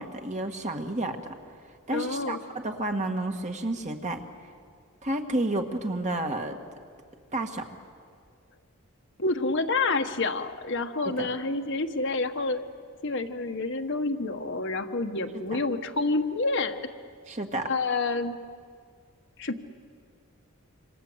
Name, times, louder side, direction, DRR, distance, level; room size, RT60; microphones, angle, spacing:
voice 1, 0.0-1.3 1.9-4.2 5.0-6.6 7.3-7.7 11.0-11.3 15.5-15.6 17.3-17.7, right 1 dB, 35° right, 4 dB, 1.8 m, -30 dB
voice 2, 1.9-2.4 9.2-12.6 13.0-16.9 17.6-18.4 19.4-19.6, left 3 dB, 55° left, 6 dB, 1.4 m, -28 dB
27.5 x 26.5 x 8.0 m, 2.2 s
head